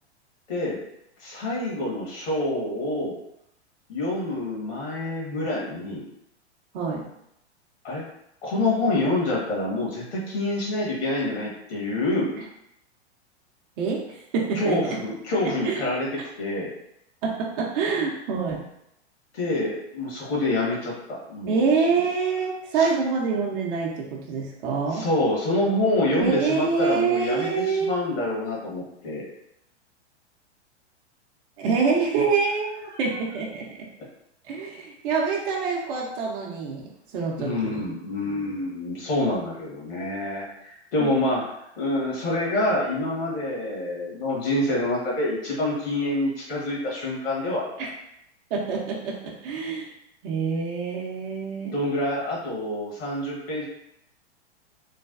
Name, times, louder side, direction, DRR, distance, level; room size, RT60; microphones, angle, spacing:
voice 1, 0.5-0.8 1.2-3.2 3.9-6.1 7.8-8.0 8.4-12.3 14.5-16.7 19.3-21.6 22.8-22.9 24.9-29.3 37.4-41.4 41.8-47.7 51.7-53.6, left 1 dB, 60° left, -4 dB, 1.4 m, -27 dB
voice 2, 6.7-7.0 12.3-12.4 13.8-15.0 15.6-15.8 17.2-18.6 21.5-25.0 26.2-28.1 31.6-33.9 34.5-37.9 41.0-41.1 47.8-47.9 48.5-49.9 50.2-51.8, right 5 dB, 50° right, -2 dB, 0.7 m, -26 dB
3.2 x 2.2 x 2.4 m, 0.79 s
hypercardioid pair, 105°, 35 cm